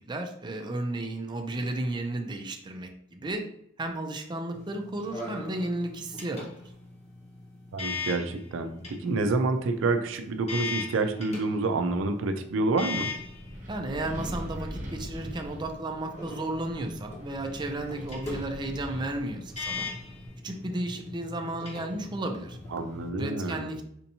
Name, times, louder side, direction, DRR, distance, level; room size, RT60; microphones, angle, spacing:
voice 1, 0.1-3.4 3.8-6.5 13.7-19.9 20.4-22.6 23.2-23.8, right 1 dB, 25° right, 4 dB, 0.4 m, -33 dB
sound 1, 4.5-23.1, left 4 dB, 35° left, 1.1 m, -40 dB
voice 2, 7.7-13.1 22.7-23.8, right 3 dB, 80° right, 7 dB, 0.4 m, -28 dB
Wind, 12.9-20.3, equal, 40° right, 0.9 m, -42 dB
4.3 x 2.7 x 2.8 m, 0.70 s
head